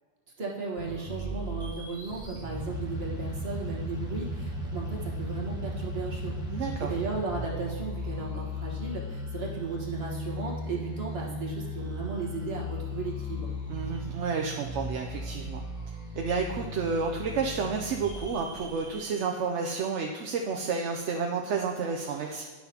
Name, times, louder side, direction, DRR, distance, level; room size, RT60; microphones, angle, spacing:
voice 1, 0.4-13.6, right 3 dB, 55° right, -3 dB, 1.6 m, -36 dB
sound 1, 0.8-19.3, left 1 dB, 5° right, 0.9 m, -36 dB
voice 2, 6.5-6.9 13.7-15.6 16.1-22.4, right 5 dB, 80° right, 2 dB, 0.9 m, -30 dB
10.5 x 5.9 x 2.8 m, 1.5 s
omnidirectional pair, 1.2 m